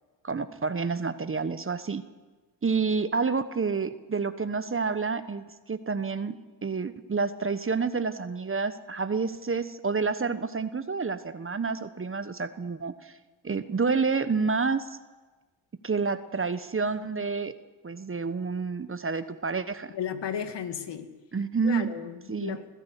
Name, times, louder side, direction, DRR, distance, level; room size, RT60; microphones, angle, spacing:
voice 1, 0.2-2.0 2.6-6.4 6.6-13.1 13.4-15.0 15.8-17.5 17.8-19.9 21.3-21.9 22.3-22.6, right 4 dB, 25° right, 12 dB, 1.2 m, -29 dB
voice 2, 19.9-21.1 21.6-22.7, left 8 dB, 55° left, 8 dB, 2.1 m, -34 dB
23.0 x 15.0 x 8.3 m, 1.3 s
hypercardioid pair, 55°, 50 cm